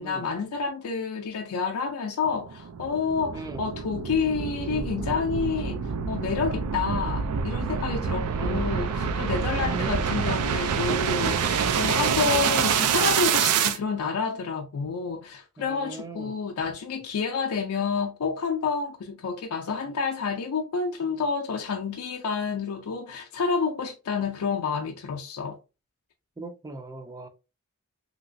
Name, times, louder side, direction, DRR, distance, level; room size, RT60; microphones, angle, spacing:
voice 1, 0.0-25.6, left 5 dB, 80° left, 0.4 m, -29 dB
sound 1, 2.3-13.8, right 6 dB, 90° right, 0.4 m, -27 dB
voice 2, 3.3-3.7 8.3-8.8 9.6-10.1 15.6-16.3 26.4-27.3, right 2 dB, 15° right, 0.4 m, -39 dB
3.0 x 2.9 x 2.5 m
head